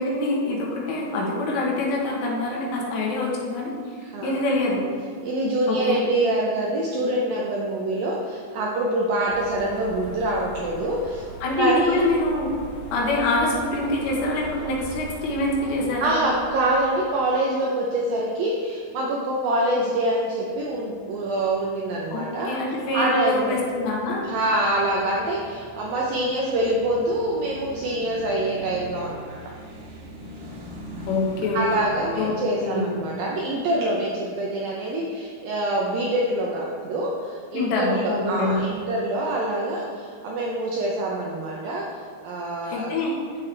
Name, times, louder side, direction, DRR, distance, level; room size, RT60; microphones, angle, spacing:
voice 1, 0.0-3.7 4.2-4.8 5.7-6.0 11.4-12.5 12.9-16.2 22.1-24.2 31.1-31.6 32.2-32.9 37.5-38.7 42.6-43.1, left 2 dB, 80° left, -2 dB, 3.4 m, -25 dB
voice 2, 4.0-4.4 5.2-11.2 11.6-12.0 16.0-22.5 22.9-23.6 24.2-29.4 31.5-42.9, right 1 dB, 80° right, -3 dB, 2.1 m, -25 dB
sound 1, 9.3-17.3, right 1 dB, 60° left, 2.2 m, -41 dB
sound 2, 20.4-33.7, right 1 dB, 65° right, 3.6 m, -43 dB
12.5 x 5.7 x 3.3 m, 2.1 s
omnidirectional pair, 5.1 m